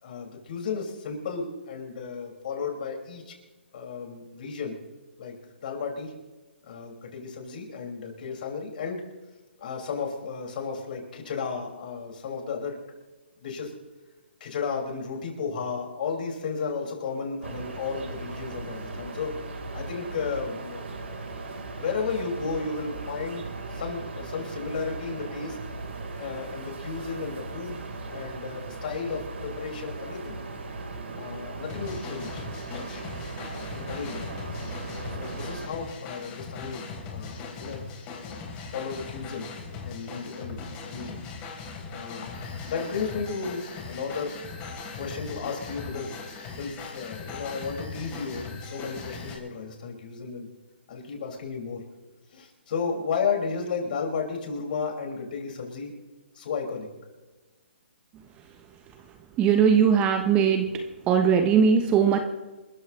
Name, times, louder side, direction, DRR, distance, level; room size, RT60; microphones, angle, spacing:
voice 1, 0.0-3.3 3.7-4.8 5.2-6.1 6.7-9.0 9.6-12.8 13.4-13.7 14.4-19.4 19.7-21.4 21.8-25.6 26.2-27.8 28.1-30.4 31.2-33.0 33.5-34.4 35.1-37.8 38.2-39.5 39.8-40.6 40.9-41.2 41.9-42.3 42.6-44.4 45.0-46.1 46.5-50.5 50.9-51.8 52.3-55.9 56.3-56.9, left 5 dB, 50° left, 0 dB, 5.8 m, -33 dB
sound 1, 17.4-35.7, right 3 dB, 80° right, 4.2 m, -38 dB
sound 2, 31.7-49.4, left 4 dB, 20° left, 3.8 m, -39 dB
voice 2, 59.4-60.7 61.1-62.2, right 7 dB, 15° right, 6 dB, 1.1 m, -20 dB
28.0 x 14.5 x 3.3 m, 1.2 s
hypercardioid pair, 155°, 6 cm